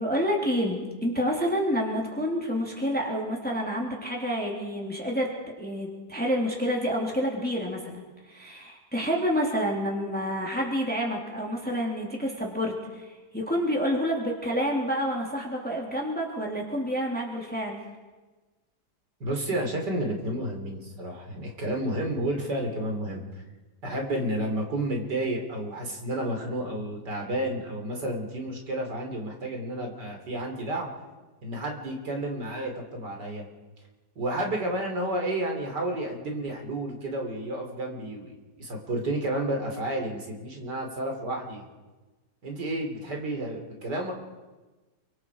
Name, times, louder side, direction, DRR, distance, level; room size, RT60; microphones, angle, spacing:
voice 1, 0.0-5.3 5.6-17.8, equal, 5° left, -2 dB, 3.4 m, -28 dB
voice 2, 19.2-23.4 23.8-30.9 31.4-33.5 34.2-41.7 42.4-44.1, right 1 dB, 90° right, 2 dB, 4.2 m, -31 dB
28.5 x 24.0 x 4.9 m, 1.2 s
omnidirectional pair, 1.8 m